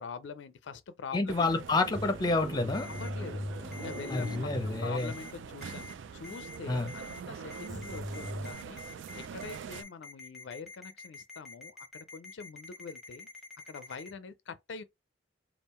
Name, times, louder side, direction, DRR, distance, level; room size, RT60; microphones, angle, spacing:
voice 1, 0.0-1.5 2.9-4.5 4.8-13.3 13.7-14.8, left 5 dB, 65° left, 0.4 m, -44 dB
voice 2, 1.1-2.9 4.1-5.1 6.7-6.9, left 3 dB, 20° left, 0.6 m, -29 dB
sound 1, 1.3-9.8, right 6 dB, 75° right, 0.3 m, -44 dB
sound 2, 1.9-5.7 6.0-6.1 7.7-8.5, left 1 dB, 20° right, 1.2 m, -40 dB
Ringtone, 2.7-3.1 3.7-4.4 5.0-5.3 5.6-5.9 6.2-6.6 6.9-7.2 7.5-14.1, left 3 dB, ahead, 0.9 m, -47 dB
3.6 x 2.4 x 4.2 m
head